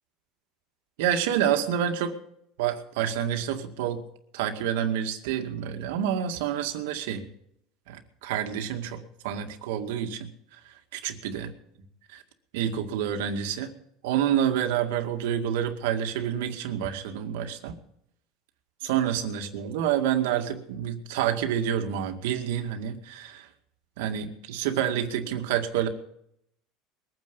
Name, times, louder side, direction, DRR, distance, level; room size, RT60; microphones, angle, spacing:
voice 1, 1.0-2.2 2.6-4.0 4.3-7.3 7.9-10.3 10.9-11.5 12.1-12.2 12.5-13.7 14.0-17.7 18.8-23.5 24.0-25.9, right 9 dB, 90° right, 5 dB, 2.1 m, -28 dB
22.0 x 9.6 x 5.5 m, 0.73 s
cardioid pair, 140°, 0 cm